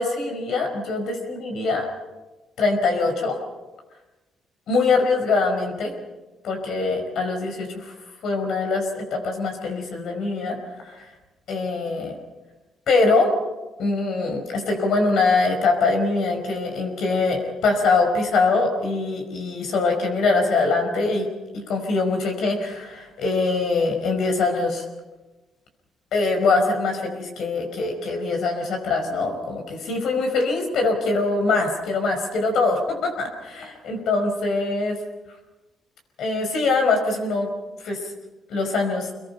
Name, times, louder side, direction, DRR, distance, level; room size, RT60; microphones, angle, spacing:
voice 1, 0.0-1.9 2.6-3.4 4.7-5.9 6.4-8.0 8.2-10.6 10.8-11.1 11.5-12.2 12.9-13.4 13.8-24.9 26.1-35.0 36.2-37.5 37.8-38.1 38.5-39.1, left 3 dB, 75° left, 4 dB, 5.1 m, -23 dB
27.0 x 22.0 x 5.7 m, 1.1 s
cardioid pair, 90°, 0 cm